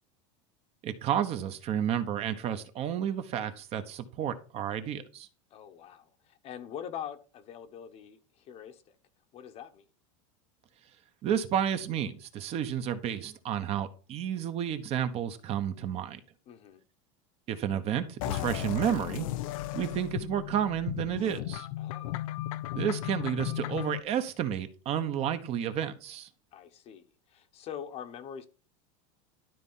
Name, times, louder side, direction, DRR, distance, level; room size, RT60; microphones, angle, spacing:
voice 1, 0.8-5.3 11.2-16.2 17.5-19.3 19.7-21.7 22.7-26.3, right 9 dB, 35° right, 1.1 m, -31 dB
voice 2, 5.5-8.8 9.3-9.8 16.5-16.8 21.8-22.2 26.5-27.0 27.3-28.5, left 9 dB, 35° left, 1.1 m, -43 dB
sound 1, 18.2-24.0, left 14 dB, 75° left, 0.7 m, -35 dB
12.0 x 4.1 x 5.6 m
supercardioid pair, 150°, 18 cm